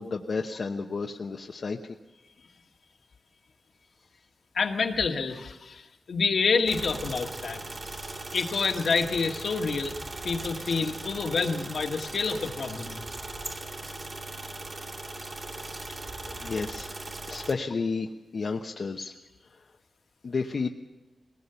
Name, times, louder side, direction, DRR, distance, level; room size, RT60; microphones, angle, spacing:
voice 1, 0.0-1.8 2.2-2.6 16.3-16.9 17.3-19.2 19.4-19.7 20.2-20.7, left 4 dB, 65° left, 2 dB, 1.0 m, -32 dB
voice 2, 4.5-7.6 8.3-10.0 10.2-13.0, left 4 dB, 80° left, 3 dB, 1.9 m, -28 dB
sound 1, 6.7-17.5, right 2 dB, 45° right, 2.1 m, -39 dB
20.5 x 19.0 x 7.0 m, 1.1 s
cardioid pair, 75°, 0 cm